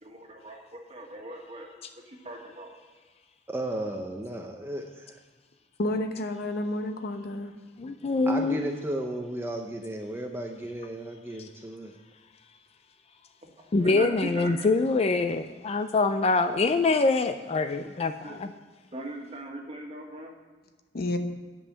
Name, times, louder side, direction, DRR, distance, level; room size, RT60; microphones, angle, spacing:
voice 1, 0.0-1.7 1.9-2.7 13.4-14.7 17.9-18.4 18.9-20.3, right 1 dB, 35° right, 0 dB, 1.6 m, -40 dB
voice 2, 3.5-5.2 8.3-12.0, right 1 dB, 15° right, 3 dB, 0.6 m, -34 dB
voice 3, 5.8-7.6 20.9-21.2, left 1 dB, 55° left, 6 dB, 0.9 m, -30 dB
voice 4, 7.8-8.6 11.4-11.5 13.7-18.5, left 3 dB, 35° left, 9 dB, 0.4 m, -25 dB
9.6 x 5.5 x 7.2 m, 1.4 s
head